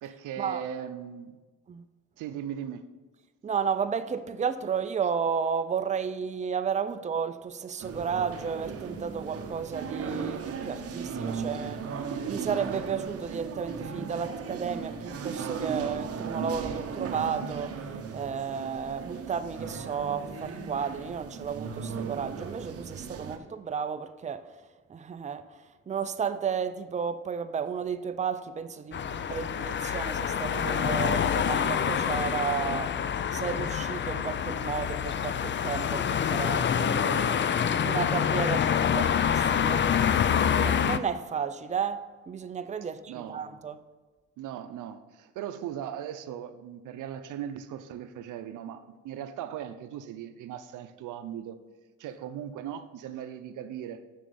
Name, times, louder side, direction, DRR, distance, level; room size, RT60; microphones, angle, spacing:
voice 1, 0.0-1.4 2.2-2.8 43.1-43.4 44.4-51.6 52.0-54.0, right 9 dB, 85° right, 0.7 m, -38 dB
voice 2, 3.4-24.5 24.9-39.9 40.5-43.8, right 6 dB, 25° right, 0.5 m, -33 dB
sound 1, 7.8-23.4, right 6 dB, 50° right, 1.0 m, -36 dB
sound 2, 28.9-41.0, left 8 dB, 40° left, 0.5 m, -26 dB
7.5 x 6.3 x 6.9 m
cardioid pair, 90°, 30 cm